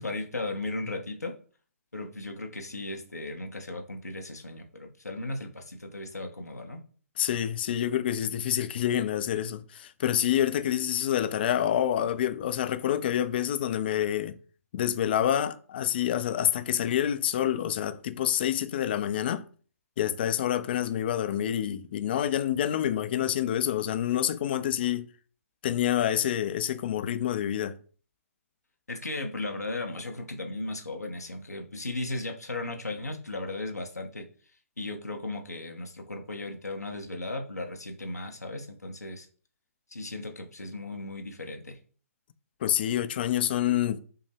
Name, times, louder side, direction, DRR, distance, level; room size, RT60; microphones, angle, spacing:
voice 1, 0.0-1.3 1.9-6.8 28.9-34.3 34.8-39.3 39.9-41.8, left 2 dB, 85° left, 0.8 m, -36 dB
voice 2, 7.2-14.4 14.7-19.4 20.0-25.1 25.6-27.8 42.6-44.0, left 10 dB, 40° left, 0.4 m, -27 dB
5.5 x 2.1 x 3.4 m
figure-of-eight pair, 135°, 8 cm